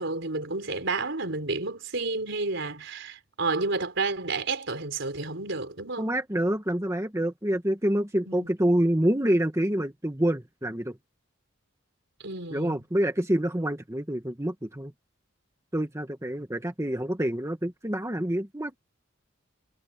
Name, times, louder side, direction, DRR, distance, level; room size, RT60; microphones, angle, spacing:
voice 1, 0.0-6.1 8.3-8.5 12.2-12.8, right 3 dB, 65° right, 4.7 m, -31 dB
voice 2, 6.0-11.0 12.5-14.9 15.7-18.8, right 1 dB, 15° right, 1.5 m, -27 dB
head